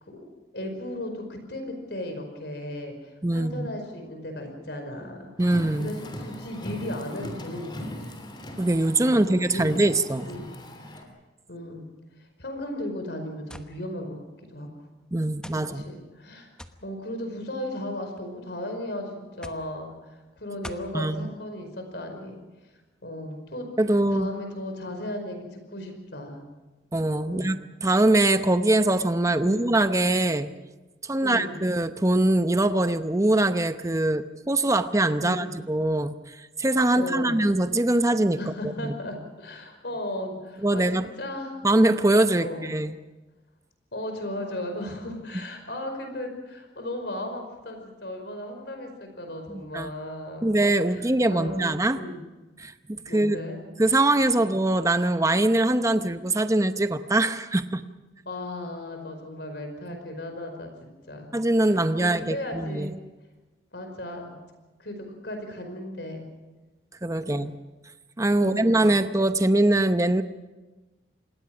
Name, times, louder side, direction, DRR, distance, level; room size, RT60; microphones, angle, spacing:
voice 1, 0.5-5.3 5.7-7.7 9.1-9.9 10.3-10.5 11.5-11.9 12.4-14.2 14.5-14.7 15.7-16.5 16.8-22.4 23.0-23.7 24.1-26.4 27.3-27.6 29.4-29.7 31.2-31.6 35.2-35.5 37.0-37.4 38.4-41.6 42.4-42.7 43.9-50.6 50.9-52.2 53.1-53.6 54.4-54.5 58.3-60.7 61.1-61.3 62.0-62.9 63.7-64.4 64.8-66.3 67.3-67.4 68.4-68.9, left 1 dB, 65° left, 5 dB, 5.2 m, -36 dB
voice 2, 3.2-3.7 5.4-5.9 8.6-10.3 15.1-15.8 20.9-21.3 23.8-24.3 26.9-30.5 31.1-36.1 36.6-38.4 38.6-38.9 40.6-41.1 41.6-42.9 49.5-49.9 50.4-52.0 52.6-52.7 53.1-53.4 53.8-57.8 59.9-60.0 61.3-62.9 67.0-67.5 68.2-70.2, right 1 dB, 15° right, 10 dB, 0.8 m, -23 dB
Car, 5.4-11.0, left 1 dB, 25° left, 3.2 m, -39 dB
sound 1, 13.5-13.7 14.6-14.7 15.4-15.7 16.6-16.8 17.8-18.3 19.4-19.7 20.6-20.9, left 1 dB, 5° left, 1.1 m, -42 dB
27.0 x 20.5 x 6.1 m, 1.2 s
head